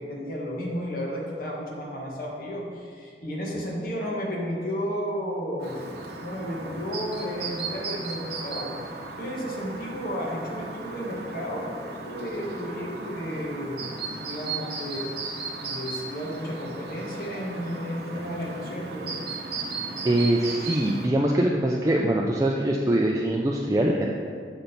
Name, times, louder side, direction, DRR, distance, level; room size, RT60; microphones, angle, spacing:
voice 1, 0.0-5.8 6.1-15.1 15.6-19.2, equal, 55° left, -3 dB, 1.5 m, -33 dB
Chirp tweet, 5.6-21.1, right 3 dB, 60° right, 0.9 m, -36 dB
voice 2, 20.0-24.1, right 1 dB, 20° right, -1 dB, 0.4 m, -23 dB
7.9 x 4.3 x 5.2 m, 2.1 s
head